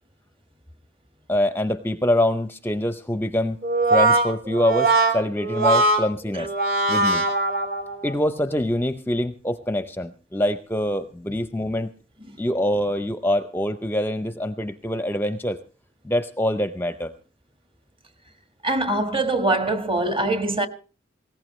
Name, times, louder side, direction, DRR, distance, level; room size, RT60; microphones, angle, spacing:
voice 1, 1.3-3.6 3.9-6.5 6.9-7.2 8.0-11.9 12.4-15.6 16.0-17.1, left 1 dB, 10° left, 0.6 m, -24 dB
Brass instrument, 3.6-8.1, right 2 dB, 50° right, 2.9 m, -21 dB
voice 2, 18.6-20.7, right 2 dB, 25° right, 1.5 m, -23 dB
20.0 x 17.5 x 3.1 m
head